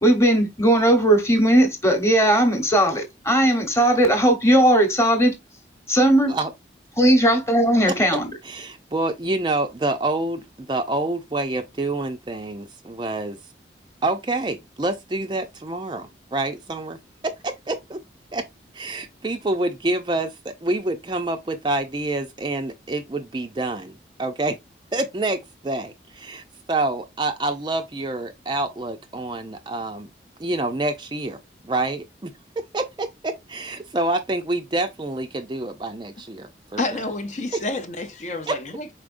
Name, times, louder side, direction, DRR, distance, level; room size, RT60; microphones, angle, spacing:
voice 1, 0.0-5.3 5.9-6.3 7.0-8.3, right 1 dB, 15° left, 1.0 m, -18 dB
voice 2, 8.4-13.4 14.0-17.0 17.2-18.0 18.3-18.4 18.7-24.6 24.9-30.1 30.4-31.4 31.6-32.3 32.7-36.8 38.5-38.6, right 2 dB, 25° right, 0.4 m, -27 dB
voice 3, 36.8-38.9, left 2 dB, 40° left, 0.5 m, -29 dB
4.8 x 4.3 x 2.5 m
head